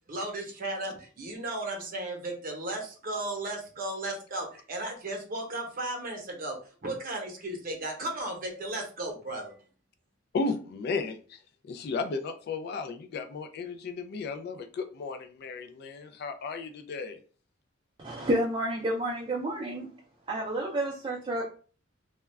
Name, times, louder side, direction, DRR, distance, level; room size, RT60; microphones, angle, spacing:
voice 1, 0.1-9.6, right 2 dB, 45° right, 0.8 m, -35 dB
voice 2, 10.3-11.4 11.7-17.2, left 4 dB, 55° left, 0.3 m, -34 dB
voice 3, 18.0-19.9 20.3-21.4, right 1 dB, 25° right, 0.4 m, -30 dB
2.3 x 2.1 x 3.2 m
head